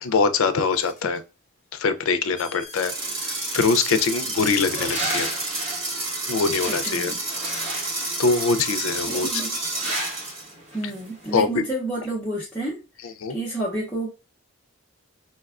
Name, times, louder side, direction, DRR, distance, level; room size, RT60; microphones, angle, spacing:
voice 1, 0.0-1.2 1.7-2.9 3.2-5.3 6.2-7.1 8.2-9.3 11.3-11.5 13.2-13.3, left 4 dB, 80° left, 0.4 m, -23 dB
sound 1, 0.7-1.2 1.7-1.8 2.3-3.7 4.6-5.2 5.7-7.0 7.3-8.1 9.0-9.9, left 3 dB, 40° left, 0.7 m, -43 dB
sound 2, 2.7-10.5, right 2 dB, 70° right, 1.8 m, -30 dB
sound 3, 3.0-11.3, right 1 dB, 30° right, 1.2 m, -35 dB
voice 2, 6.6-7.2 9.1-9.6 10.7-14.1, right 2 dB, 5° left, 0.6 m, -30 dB
4.1 x 2.2 x 2.3 m
head